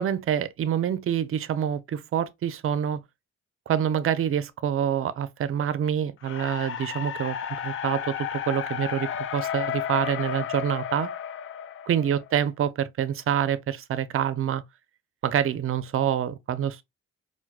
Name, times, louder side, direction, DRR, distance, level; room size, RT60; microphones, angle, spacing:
voice 1, 0.0-3.0 3.7-7.4 7.6-11.1 11.9-14.6 15.2-16.8, right 9 dB, 45° right, 0.5 m, -26 dB
sound 1, 6.2-12.4, left 9 dB, 45° left, 0.4 m, -32 dB
4.4 x 2.2 x 2.3 m
cardioid pair, 90°, 30 cm